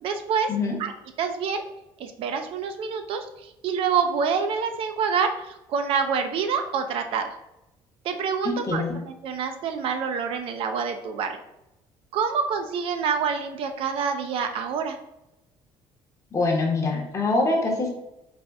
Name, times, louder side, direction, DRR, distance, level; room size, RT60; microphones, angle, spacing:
voice 1, 0.0-0.5 0.8-0.9 1.2-1.6 2.0-7.4 8.0-11.4 12.1-15.0, right 6 dB, 60° right, 7 dB, 0.4 m, -27 dB
voice 2, 8.4-8.9 16.3-17.9, left 3 dB, 30° left, 0 dB, 0.8 m, -24 dB
4.1 x 2.1 x 3.4 m, 0.89 s
cardioid pair, 135°, 11 cm